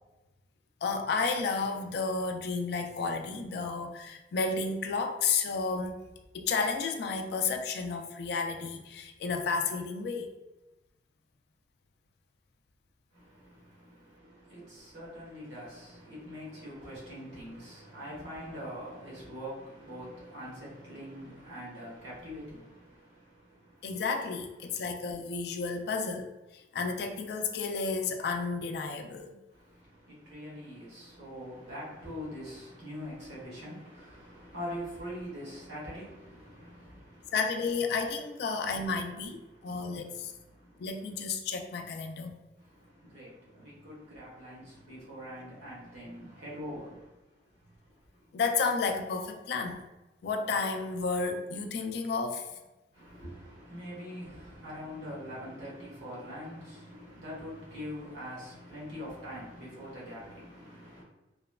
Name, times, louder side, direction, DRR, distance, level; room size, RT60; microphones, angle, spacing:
voice 1, 0.8-6.0 6.3-10.3 23.8-26.3 26.5-29.4 37.3-39.4 39.6-40.3 40.8-42.4 48.3-49.8 50.2-52.5, left 4 dB, 60° left, 0.3 m, -32 dB
voice 2, 13.1-24.0 24.6-24.9 29.5-37.4 38.5-38.6 39.4-41.2 42.6-48.3 52.9-61.0, equal, 85° right, 1.1 m, -44 dB
3.0 x 2.1 x 2.3 m
head